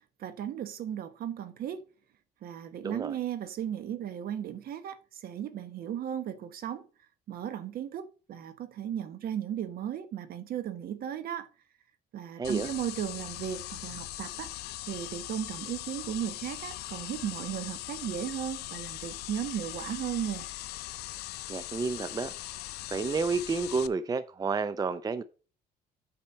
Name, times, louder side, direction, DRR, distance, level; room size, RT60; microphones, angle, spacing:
voice 1, 0.2-1.8 2.4-6.8 7.3-11.5 12.1-14.5 14.9-20.5, right 10 dB, 65° right, 1.2 m, -36 dB
voice 2, 2.8-3.1 12.4-12.7 21.5-22.3 22.9-25.2, right 4 dB, 20° right, 0.5 m, -30 dB
sound 1, 12.4-23.9, left 16 dB, 75° left, 0.5 m, -40 dB
8.8 x 4.3 x 5.5 m
cardioid pair, 110°, 17 cm